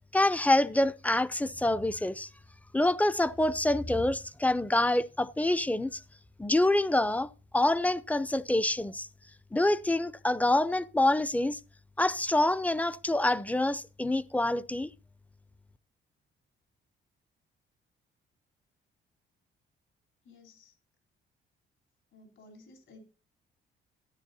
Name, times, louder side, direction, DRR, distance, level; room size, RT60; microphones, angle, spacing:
voice 1, 0.1-2.3 2.7-6.0 6.4-9.1 9.5-11.6 12.0-14.9, left 1 dB, 5° left, 0.5 m, -26 dB
voice 2, 20.2-20.8 22.1-23.0, left 2 dB, 70° left, 3.6 m, -55 dB
13.5 x 9.9 x 2.8 m
cardioid pair, 90°, 20 cm